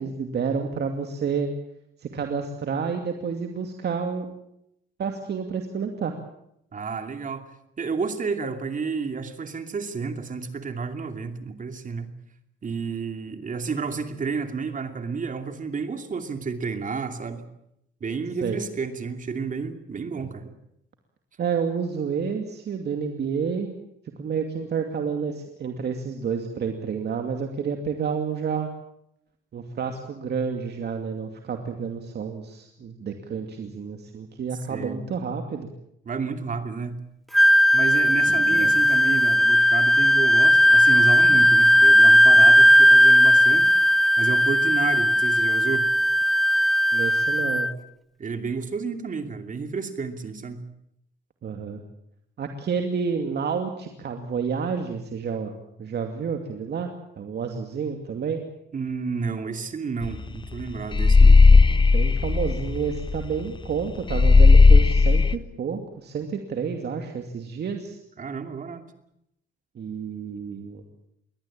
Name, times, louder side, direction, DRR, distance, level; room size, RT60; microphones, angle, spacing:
voice 1, 0.0-1.5 2.0-4.3 5.0-6.1 18.4-18.6 21.4-23.7 24.2-28.7 29.5-35.7 38.3-38.9 46.9-47.7 51.4-51.8 52.4-55.5 55.8-58.4 61.5-61.6 61.9-68.0 69.8-70.8, right 6 dB, 55° right, 5 dB, 2.5 m, -30 dB
voice 2, 6.7-7.4 7.8-12.1 12.6-17.4 18.0-20.5 34.7-35.0 36.1-37.0 37.7-43.7 44.2-45.9 48.2-50.6 58.7-61.4 68.2-68.8, right 5 dB, 40° right, 7 dB, 2.7 m, -31 dB
Wind instrument woodwind instrument, 37.3-47.7, equal, ahead, 0.8 m, -17 dB
sound 1, 60.0-60.2 60.5-63.4 63.6-63.7 64.1-65.3, left 4 dB, 25° left, 1.0 m, -14 dB
22.5 x 18.0 x 8.7 m, 0.78 s
cardioid pair, 90°, 20 cm